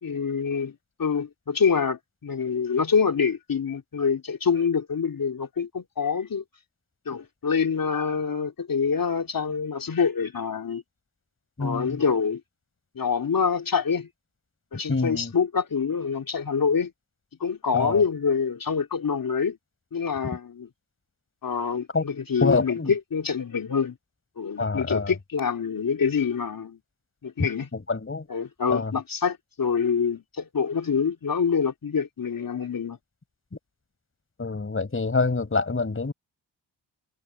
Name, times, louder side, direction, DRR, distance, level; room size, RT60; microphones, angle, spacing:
voice 1, 0.0-6.4 7.0-10.8 11.6-12.4 12.9-14.1 14.7-16.9 17.4-19.6 19.9-20.7 21.4-24.0 24.4-26.8 27.2-27.7 28.3-33.0, left 6 dB, 50° left, 3.1 m, -26 dB
voice 2, 11.6-12.0 14.9-15.3 17.7-18.0 21.9-22.0 22.4-22.9 24.6-25.1 27.7-28.3 28.7-28.9 34.4-36.1, left 3 dB, 30° left, 5.7 m, -26 dB
cardioid pair, 80°, 45 cm